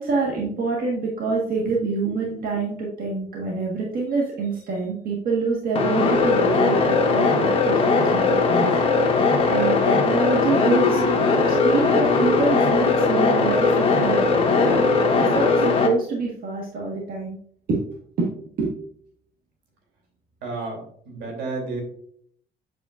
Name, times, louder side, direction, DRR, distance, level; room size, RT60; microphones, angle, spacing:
voice 1, 0.0-8.7 9.5-11.0 11.5-17.4 17.7-17.8 18.2-18.3 18.6-18.7, right 4 dB, 60° right, -2 dB, 1.5 m, -26 dB
sound 1, 5.7-15.9, left 4 dB, 35° left, 1.3 m, -19 dB
voice 2, 20.4-21.8, right 3 dB, 85° right, 0 dB, 3.0 m, -31 dB
8.1 x 6.4 x 2.5 m, 0.63 s
cardioid pair, 110°, 17 cm